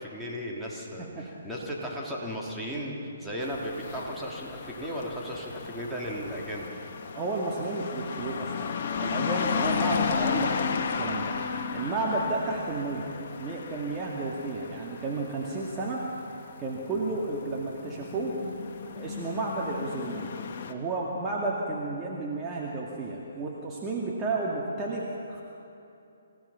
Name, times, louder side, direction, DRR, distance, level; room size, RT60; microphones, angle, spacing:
voice 1, 0.0-6.7, equal, ahead, -5 dB, 3.3 m, -35 dB
sound 1, 3.4-20.7, left 6 dB, 50° left, 1.7 m, -34 dB
voice 2, 7.1-8.7 9.0-11.3 11.7-13.1 13.4-16.0 16.6-18.4 19.0-20.4 20.7-25.4, right 3 dB, 20° right, -3 dB, 2.3 m, -32 dB
27.0 x 16.5 x 5.9 m, 2.8 s
hypercardioid pair, 140°, 0 cm